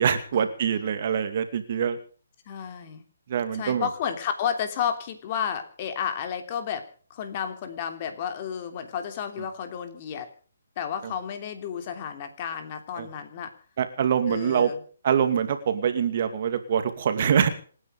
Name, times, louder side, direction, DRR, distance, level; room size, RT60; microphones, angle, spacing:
voice 1, 0.0-2.0 3.3-3.9 11.0-11.1 13.0-13.1 13.8-14.7 15.0-17.5, right 8 dB, 45° right, 9 dB, 2.5 m, -24 dB
voice 2, 2.5-3.0 3.5-10.3 10.8-13.5 14.3-14.8, left 8 dB, 30° left, 7 dB, 3.1 m, -32 dB
27.0 x 10.0 x 5.1 m, 0.43 s
hypercardioid pair, 160°, 0 cm